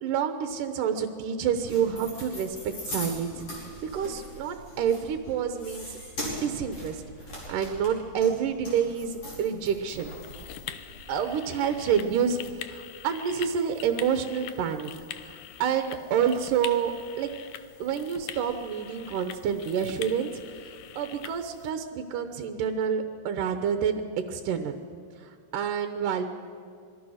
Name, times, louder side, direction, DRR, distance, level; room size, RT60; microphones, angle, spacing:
voice 1, 0.0-6.0 6.4-7.0 7.5-10.1 11.1-14.9 15.2-17.3 17.8-20.3 21.0-24.0 24.3-24.8 25.2-26.2, right 7 dB, 70° right, 7 dB, 2.3 m, -28 dB
sound 1, 1.4-12.5, left 1 dB, 40° left, 6.3 m, -41 dB
sound 2, 9.9-21.7, left 10 dB, 70° left, 1.9 m, -43 dB
26.0 x 21.0 x 6.4 m, 2.2 s
omnidirectional pair, 4.4 m